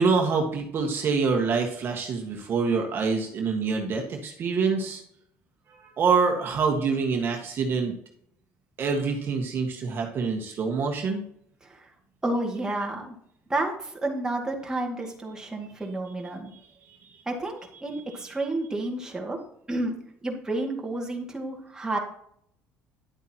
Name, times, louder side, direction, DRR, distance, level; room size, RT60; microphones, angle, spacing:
voice 1, 0.0-5.0 6.0-7.9 8.8-11.2 16.9-17.0, right 5 dB, 45° right, 2 dB, 1.6 m, -25 dB
voice 2, 12.2-13.2 13.5-16.5 17.3-19.4 19.7-22.0, right 2 dB, 15° right, 0 dB, 2.2 m, -30 dB
10.5 x 8.2 x 3.0 m, 0.68 s
cardioid pair, 115°, 5 cm